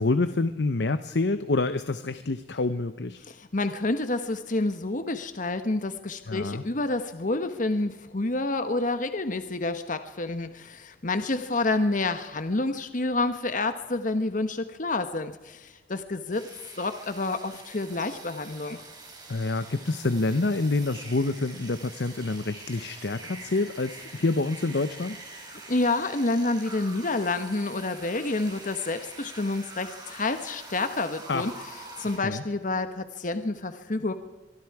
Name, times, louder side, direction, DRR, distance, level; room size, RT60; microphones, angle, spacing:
voice 1, 0.0-3.2 6.3-6.6 19.3-25.2 31.3-31.6 32.2-32.4, left 3 dB, 70° left, 12 dB, 0.8 m, -27 dB
voice 2, 3.3-16.4 16.8-18.8 25.7-31.5 32.0-34.1, left 2 dB, 45° left, 9 dB, 1.2 m, -28 dB
sound 1, 16.3-32.2, right 3 dB, 25° right, 4.4 m, -45 dB
23.5 x 23.5 x 4.8 m, 1.2 s
head